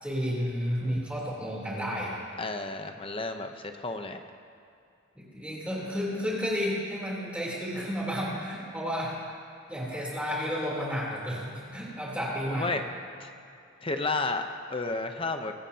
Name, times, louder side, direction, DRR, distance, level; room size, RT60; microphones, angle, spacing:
voice 1, 0.0-2.1 5.1-9.2 9.7-12.7, equal, 5° right, -5 dB, 3.4 m, -32 dB
voice 2, 2.4-4.2 12.5-12.8 13.2-13.3 13.8-15.5, left 3 dB, 25° left, 6 dB, 0.8 m, -32 dB
23.5 x 15.5 x 2.9 m, 2.5 s
head